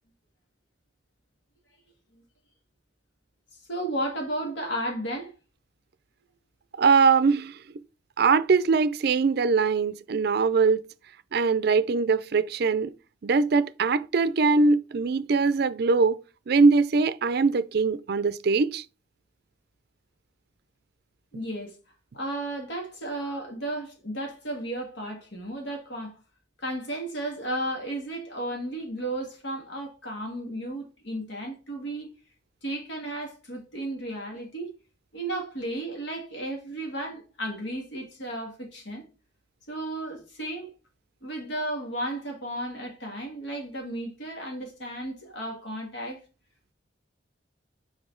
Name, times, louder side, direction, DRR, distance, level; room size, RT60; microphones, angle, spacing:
voice 1, 3.7-5.3 21.3-21.8 22.1-26.2 26.6-32.1 32.6-34.7 35.1-39.0 39.7-40.7 41.2-46.2, right 1 dB, 75° left, 1.9 m, -34 dB
voice 2, 6.8-7.6 8.2-10.8 11.3-12.9 13.2-16.2 16.5-18.8, right 4 dB, 60° right, 0.4 m, -22 dB
6.1 x 5.0 x 3.8 m
head